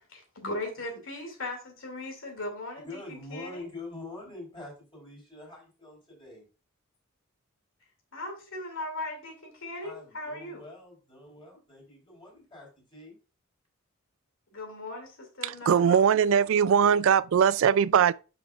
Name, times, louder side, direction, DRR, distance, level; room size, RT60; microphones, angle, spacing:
voice 1, 0.3-3.7 8.1-10.6 14.5-16.0, left 2 dB, 65° left, 2.6 m, -38 dB
voice 2, 2.8-6.5 9.8-13.2, left 2 dB, 25° left, 4.5 m, -45 dB
voice 3, 15.7-18.1, right 7 dB, 65° right, 0.3 m, -21 dB
9.3 x 5.9 x 2.5 m
head